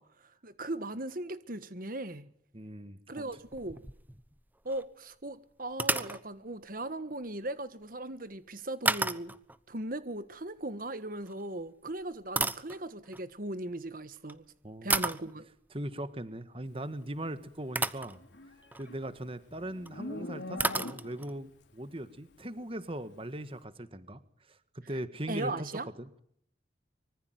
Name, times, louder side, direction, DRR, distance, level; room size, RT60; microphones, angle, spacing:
voice 1, 0.0-2.3 3.1-3.8 4.6-9.3 9.7-14.4 14.8-15.5 25.3-25.9, right 2 dB, 50° right, 1.5 m, -38 dB
voice 2, 2.5-3.2 14.6-14.9 15.7-18.2 18.8-24.2 24.5-25.7 26.0-26.2, right 1 dB, 30° right, 1.6 m, -40 dB
sound 1, 3.2-4.4 4.7-4.8 5.7-6.2 8.9-9.6 11.2-11.4 12.0-13.2 14.2-14.3 14.9-15.3 17.1-17.2 17.8-18.2 18.6-18.9 19.9-20.0 20.1-20.2 20.6-21.4, right 3 dB, 10° right, 1.1 m, -32 dB
Livestock farm animals working animals, 18.1-21.4, left 1 dB, 75° left, 4.1 m, -43 dB
25.5 x 24.5 x 9.4 m
head